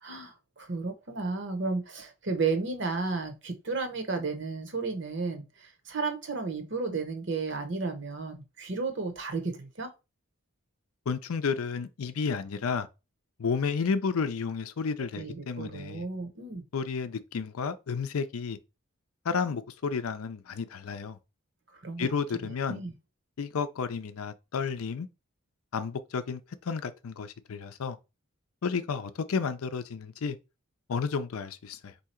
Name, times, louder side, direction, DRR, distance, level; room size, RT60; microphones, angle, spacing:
voice 1, 0.0-9.9 15.0-16.6 21.7-22.9, right 4 dB, 55° right, 0.9 m, -33 dB
voice 2, 11.1-12.9 13.4-16.1 16.7-18.6 19.3-21.2 22.0-22.8 23.4-25.1 25.7-28.0 28.6-30.4 30.9-31.9, left 5 dB, 80° left, 0.5 m, -32 dB
3.7 x 2.8 x 4.3 m
head